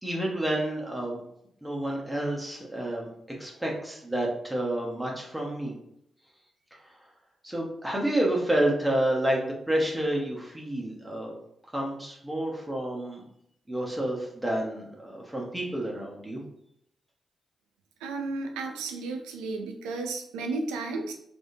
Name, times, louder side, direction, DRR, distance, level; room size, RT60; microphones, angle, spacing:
voice 1, 0.0-1.2 1.6-3.1 3.4-5.7 7.4-11.3 11.7-13.2 13.7-16.4, right 1 dB, 10° right, -2 dB, 0.9 m, -29 dB
voice 2, 18.0-21.1, right 3 dB, 90° right, 3 dB, 0.4 m, -33 dB
3.4 x 2.5 x 2.7 m, 0.74 s
hypercardioid pair, 45°, 0 cm